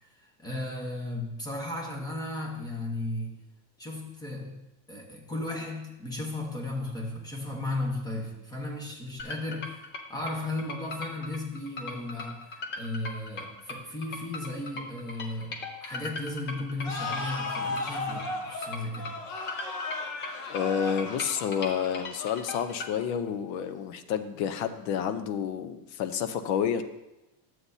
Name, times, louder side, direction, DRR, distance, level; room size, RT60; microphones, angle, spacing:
voice 1, 0.2-3.4 3.8-19.2, left 2 dB, 10° left, -1 dB, 1.0 m, -35 dB
sound 1, 9.2-22.9, left 3 dB, 25° left, 0.5 m, -39 dB
sound 2, 16.8-23.3, left 2 dB, 45° left, 1.2 m, -36 dB
voice 2, 20.5-26.8, left 8 dB, 80° left, 10 dB, 0.8 m, -29 dB
11.5 x 7.7 x 2.7 m, 0.97 s
cardioid pair, 170°, 49 cm